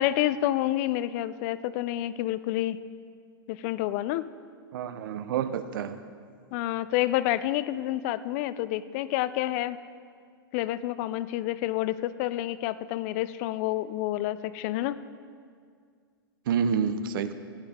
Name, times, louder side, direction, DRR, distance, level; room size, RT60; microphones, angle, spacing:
voice 1, 0.0-2.8 3.5-4.2 6.5-9.8 10.5-15.0, left 14 dB, 40° left, 15 dB, 0.4 m, -28 dB
voice 2, 4.7-6.0 16.5-17.3, right 7 dB, 60° right, 12 dB, 0.7 m, -28 dB
17.5 x 9.6 x 3.6 m, 2.1 s
hypercardioid pair, 140°, 13 cm